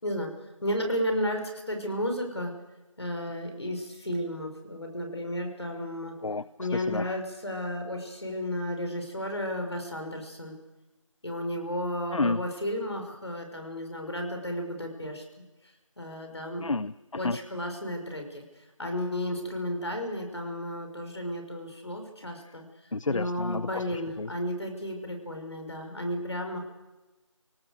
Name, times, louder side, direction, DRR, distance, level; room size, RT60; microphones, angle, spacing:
voice 1, 0.6-2.5 3.0-6.2 6.6-10.5 11.2-15.2 16.0-16.7 17.1-18.4 18.8-22.6 23.1-26.6, left 1 dB, 55° left, 4 dB, 6.0 m, -33 dB
voice 2, 6.2-7.2 12.1-12.4 16.6-17.4 22.9-24.3, left 3 dB, 75° left, 17 dB, 0.7 m, -31 dB
28.0 x 18.5 x 6.7 m, 1.1 s
figure-of-eight pair, 175°, 17 cm